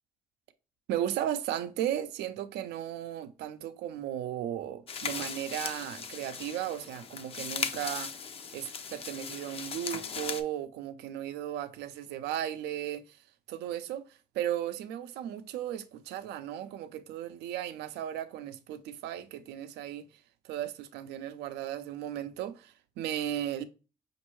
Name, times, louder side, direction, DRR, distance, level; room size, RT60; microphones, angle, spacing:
voice 1, 0.9-8.2 8.5-13.2 13.5-14.1 14.3-20.1 20.4-23.6, right 11 dB, 80° right, 0.5 m, -35 dB
sound 1, 4.9-10.4, left 6 dB, 35° left, 0.5 m, -38 dB
5.2 x 2.6 x 3.0 m
cardioid pair, 110°, 17 cm